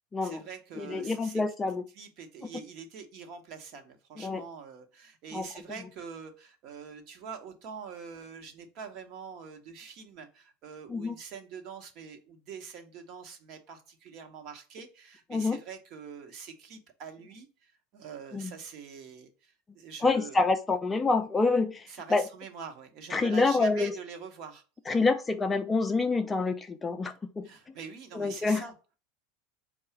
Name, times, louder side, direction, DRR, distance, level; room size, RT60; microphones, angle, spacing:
voice 1, 0.2-1.4 2.0-20.4 21.9-24.6 27.4-28.7, right 6 dB, 50° right, 1.0 m, -44 dB
voice 2, 0.8-1.8 4.2-4.4 5.3-5.5 10.9-11.1 15.3-15.6 18.3-18.5 20.0-22.3 23.1-24.0 24.9-27.7 28.1-28.6, left 3 dB, 15° left, 0.4 m, -27 dB
4.7 x 2.3 x 4.3 m
supercardioid pair, 135°, 0 cm